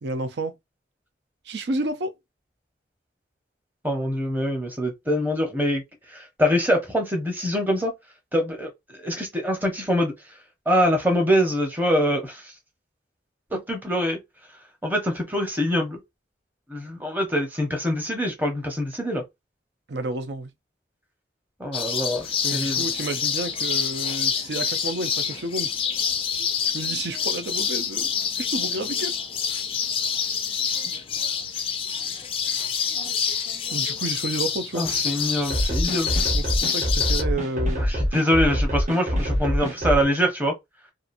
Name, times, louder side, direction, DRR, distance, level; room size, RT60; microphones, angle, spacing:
voice 1, 0.0-0.6 1.5-2.1 19.9-20.5 22.4-25.7 26.7-29.2 33.7-34.8 36.3-37.8, right 2 dB, 75° right, 0.5 m, -31 dB
voice 2, 3.8-5.8 6.1-7.9 8.3-10.1 10.7-12.5 13.5-14.2 14.8-16.0 16.7-19.2 21.6-22.8 34.7-36.1 37.8-40.5, equal, 10° right, 0.8 m, -24 dB
sound 1, 21.7-37.2, left 7 dB, 30° left, 0.3 m, -27 dB
sound 2, 35.5-40.0, equal, 40° right, 0.8 m, -25 dB
2.7 x 2.5 x 2.6 m
head